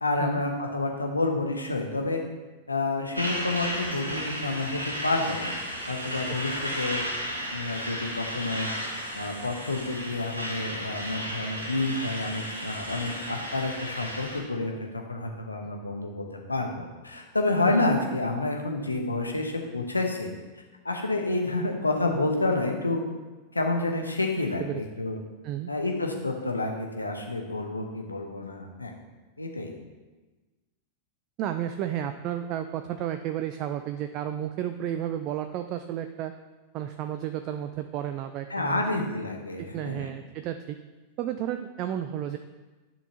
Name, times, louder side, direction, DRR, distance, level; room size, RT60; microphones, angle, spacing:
voice 1, 0.0-2.2 2.7-5.5 5.9-7.0 7.5-8.7 9.1-20.3 20.8-23.0 23.5-25.2 25.7-28.9 29.4-29.7 38.5-40.1, left 2 dB, 80° left, 2 dB, 0.9 m, -29 dB
Truck, 3.1-14.4, equal, 90° right, 1.4 m, -34 dB
voice 2, 31.4-36.4 36.7-38.8 39.6-40.8 41.2-42.4, right 11 dB, 40° right, 8 dB, 0.3 m, -32 dB
10.5 x 5.6 x 2.9 m, 1.2 s
figure-of-eight pair, 90°, 0 cm